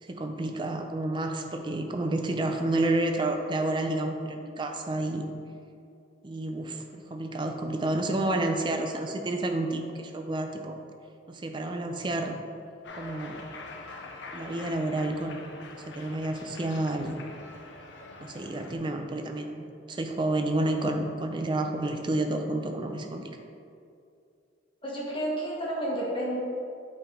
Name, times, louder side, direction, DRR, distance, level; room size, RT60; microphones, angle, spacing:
voice 1, 0.0-5.2 6.2-10.8 11.3-12.4 13.0-13.4 14.3-17.2 18.2-23.4, right 2 dB, 25° right, 4 dB, 0.4 m, -30 dB
Cheering, 12.8-18.8, left 3 dB, 75° left, 0.6 m, -44 dB
voice 2, 24.8-26.4, right 1 dB, 30° left, -6 dB, 1.4 m, -31 dB
8.4 x 3.3 x 3.7 m, 2.5 s
head